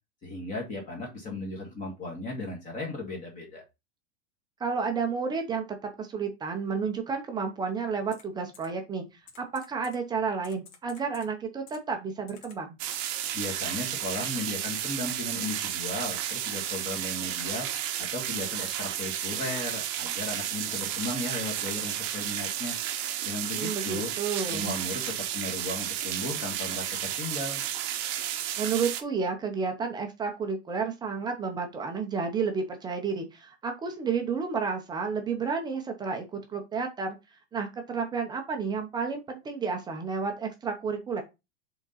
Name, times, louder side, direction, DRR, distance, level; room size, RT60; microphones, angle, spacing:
voice 1, 0.2-3.6 13.3-17.7 18.0-22.8 23.2-24.1 24.5-27.6, left 2 dB, 20° left, 0 dB, 1.7 m, -36 dB
voice 2, 4.6-5.6 6.0-9.1 9.4-12.8 23.5-24.8 28.6-37.2 37.5-41.2, right 5 dB, 10° right, 4 dB, 0.7 m, -31 dB
Typing, 8.1-8.2 8.5-8.7 9.3-10.0 10.4-11.3 11.7-11.8 12.3-12.6 13.3-13.4 14.1-14.3 14.7-14.9 15.2-15.3 15.9-16.8 17.2-19.3 19.7-19.8 20.3-21.1 21.6-22.8 23.0-23.6 24.0-24.4, left 6 dB, 45° left, 1.8 m, -52 dB
sound 1, 12.8-29.0, right 11 dB, 35° right, 0.9 m, -32 dB
5.0 x 3.9 x 5.5 m, 0.24 s
supercardioid pair, 165°, 35 cm